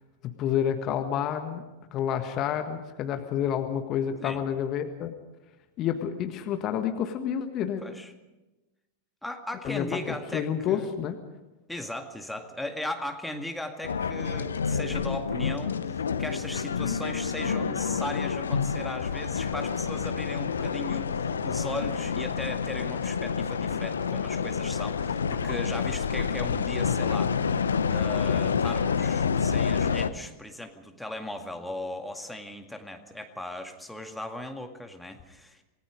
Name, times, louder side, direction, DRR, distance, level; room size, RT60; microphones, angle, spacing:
voice 1, 0.2-1.6 1.9-5.1 5.8-7.8 9.6-11.2, left 9 dB, 35° left, 7 dB, 1.6 m, -29 dB
voice 2, 7.8-8.1 9.2-10.9 11.7-27.4 27.9-35.6, left 1 dB, 5° left, 5 dB, 2.1 m, -37 dB
sound 1, 13.8-30.1, left 6 dB, 70° left, 0.9 m, -28 dB
27.5 x 19.5 x 5.2 m, 1.1 s
figure-of-eight pair, 90°, 0 cm